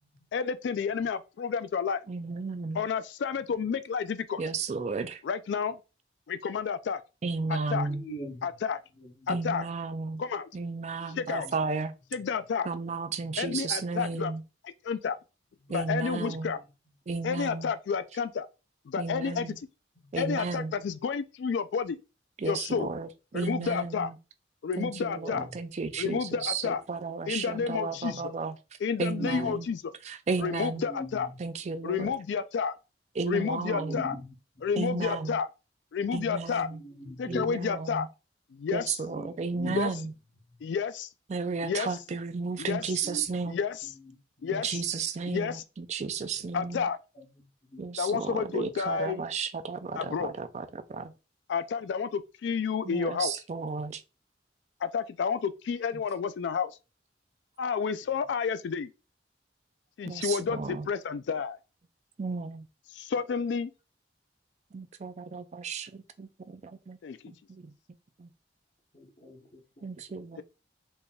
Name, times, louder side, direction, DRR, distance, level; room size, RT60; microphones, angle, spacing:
voice 1, 0.3-2.0 2.7-4.4 5.2-5.8 6.3-7.0 7.5-7.9 8.4-8.8 9.3-9.6 10.2-10.5 11.1-11.5 12.1-12.7 13.4-14.3 14.8-15.2 15.7-16.6 17.2-18.5 18.9-19.5 20.2-22.0 22.4-22.9 23.3-24.1 24.6-25.5 26.0-26.8 27.3-28.3 28.8-29.9 30.4-31.3 31.8-32.8 33.3-34.2 34.6-35.5 35.9-36.7 37.2-38.1 38.5-39.0 39.6-39.9 40.6-41.1 41.6-42.0 42.6-42.9 43.5-43.9 44.4-44.8 45.3-45.6 46.5-47.0 48.0-49.3 50.0-50.3 51.5-53.3 54.8-56.8 57.6-58.9 60.0-61.6 62.9-63.7 67.0-67.2, left 6 dB, 75° left, 0.3 m, -30 dB
voice 2, 2.1-2.8 4.4-5.2 7.2-8.0 9.3-10.2 10.5-11.9 12.7-14.4 15.7-16.5 17.1-17.7 19.0-19.6 20.1-20.7 22.4-24.2 24.8-28.5 29.0-29.7 30.0-30.9 31.4-32.1 33.2-34.0 34.8-35.4 36.1-36.8 37.3-38.1 38.7-40.1 41.3-43.6 44.5-46.9 47.8-51.1 52.8-54.0 60.0-60.9 62.2-62.7 64.7-67.0 67.3-67.7 68.2-68.3 69.8-70.4, right 4 dB, 40° right, 0.4 m, -33 dB
voice 3, 7.9-8.5 11.0-11.2 16.1-16.3 25.1-25.5 28.1-28.2 29.2-29.5 30.9-31.4 33.7-34.3 36.8-37.5 39.1-39.3 39.6-39.8 43.0-43.2 44.4-44.5 47.7-47.8 68.9-69.4, equal, 40° left, 1.0 m, -39 dB
4.1 x 3.4 x 2.3 m
head